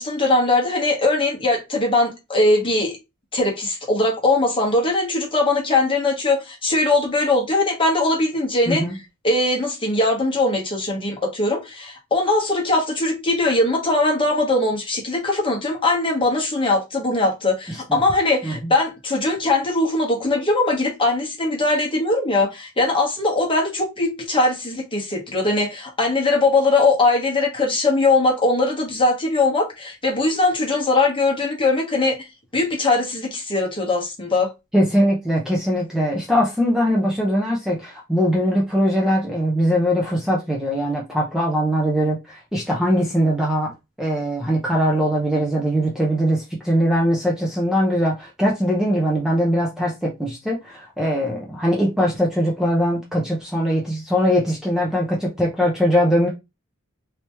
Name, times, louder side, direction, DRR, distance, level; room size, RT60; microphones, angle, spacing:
voice 1, 0.0-2.9 3.3-8.8 9.2-32.3 32.5-34.5, left 2 dB, 25° left, 1.1 m, -20 dB
voice 2, 8.7-9.0 17.7-18.0 18.4-18.7 34.7-43.7 44.0-56.3, equal, ahead, 0.6 m, -21 dB
3.3 x 2.9 x 2.9 m
head